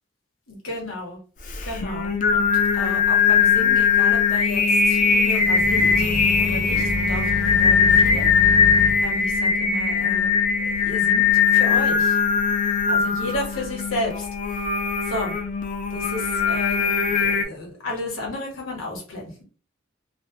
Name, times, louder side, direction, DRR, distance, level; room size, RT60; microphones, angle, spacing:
voice 1, 0.5-1.2 1.6-2.4 2.7-7.3 7.6-8.5 9.0-10.3 10.6-12.2 12.9-14.3 15.1-15.4 15.9-19.4, left 2 dB, 75° left, -1 dB, 1.1 m, -32 dB
Singing, 1.5-17.4, left 6 dB, 40° left, 0.4 m, -20 dB
sound 1, 5.4-9.0, equal, 20° right, 0.5 m, -29 dB
2.6 x 2.1 x 2.7 m, 0.39 s
head